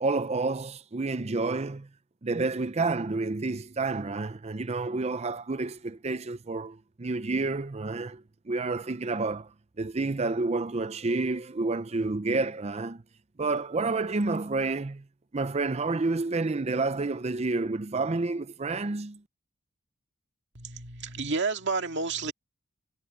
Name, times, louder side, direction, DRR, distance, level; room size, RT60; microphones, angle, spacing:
voice 1, 0.0-1.9 2.2-9.5 9.8-13.0 13.4-15.0 15.3-19.2, right 3 dB, 30° right, 0.6 m, -29 dB
voice 2, 20.5-22.3, right 4 dB, 55° right, 2.2 m, -30 dB
head